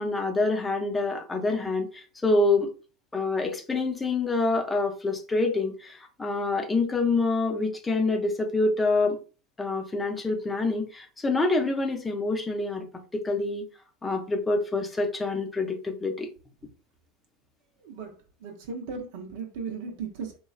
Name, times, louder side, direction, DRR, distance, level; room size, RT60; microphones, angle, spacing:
voice 1, 0.0-2.7 3.1-9.2 9.6-12.9 13.1-13.6 14.0-16.3, left 3 dB, 15° left, 0.6 m, -26 dB
voice 2, 17.8-20.4, right 5 dB, 60° right, 0.7 m, -37 dB
3.0 x 2.2 x 2.4 m
figure-of-eight pair, 80°, 0 cm